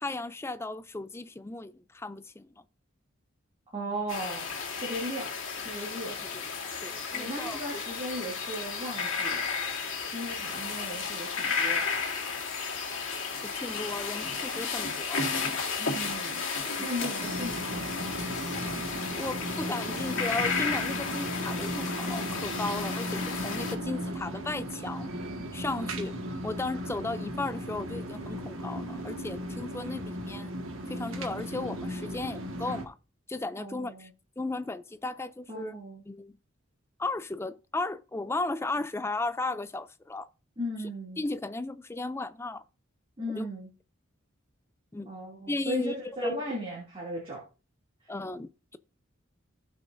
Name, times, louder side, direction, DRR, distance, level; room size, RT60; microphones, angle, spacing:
voice 1, 0.0-2.5 6.0-6.4 6.8-7.8 10.9-11.0 13.4-15.3 16.8-16.9 19.1-25.1 25.5-26.1 26.4-30.5 30.9-33.0 33.3-34.1 34.4-35.8 36.1-36.3 37.0-40.3 41.2-42.6 43.3-43.5 44.9-45.1 45.5-46.4 48.1-48.8, left 2 dB, 10° left, 0.4 m, -35 dB
voice 2, 3.7-4.5 4.8-5.3 5.6-6.2 7.1-9.4 10.1-11.9 15.8-16.4 16.8-18.1 33.6-34.1 35.5-36.0 40.6-41.2 43.2-43.7 45.0-47.4, equal, 25° right, 2.5 m, -37 dB
sound 1, 4.1-23.7, left 5 dB, 70° left, 2.4 m, -33 dB
sound 2, 17.2-32.8, equal, 80° right, 1.7 m, -36 dB
17.0 x 6.0 x 2.6 m
head